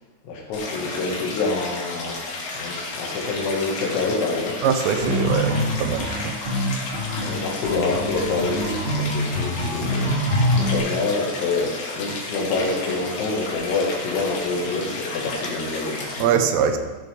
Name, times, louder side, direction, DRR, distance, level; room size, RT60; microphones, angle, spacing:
voice 1, 0.2-4.6 5.1-5.2 7.2-10.1 10.5-16.5, left 3 dB, 80° left, -1 dB, 4.6 m, -27 dB
Stream, 0.5-16.2, left 3 dB, 55° left, 3.6 m, -33 dB
voice 2, 4.6-6.4 16.2-16.8, right 7 dB, 80° right, 6 dB, 3.2 m, -22 dB
sound 1, 5.0-10.8, equal, 60° right, 0.6 m, -24 dB
15.0 x 11.0 x 3.6 m, 1.3 s
omnidirectional pair, 6.0 m